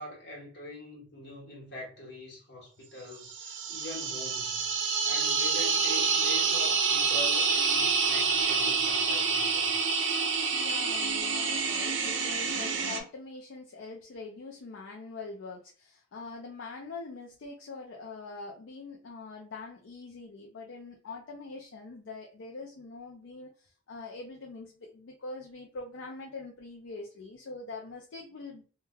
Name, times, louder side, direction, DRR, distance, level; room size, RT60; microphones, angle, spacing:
voice 1, 0.0-4.6 5.0-9.7, left 2 dB, 60° left, 1.2 m, -43 dB
sound 1, 3.3-13.0, right 5 dB, 75° right, 0.5 m, -27 dB
voice 2, 10.5-28.6, left 3 dB, 75° left, 0.4 m, -43 dB
3.2 x 2.2 x 2.2 m
head